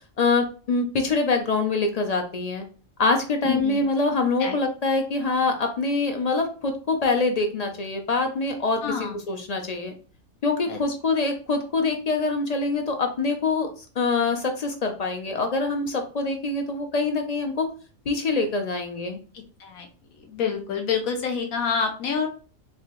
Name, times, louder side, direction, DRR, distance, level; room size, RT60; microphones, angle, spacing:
voice 1, 0.2-2.6 3.0-9.9 10.4-13.7 14.0-17.7 18.1-19.2, left 3 dB, 65° left, 5 dB, 0.4 m, -25 dB
voice 2, 3.4-3.8 4.4-4.6 8.8-9.1 10.7-10.8 19.3-19.9 20.3-22.3, left 6 dB, 85° left, 3 dB, 1.2 m, -27 dB
3.6 x 3.6 x 2.9 m, 0.38 s
omnidirectional pair, 1.4 m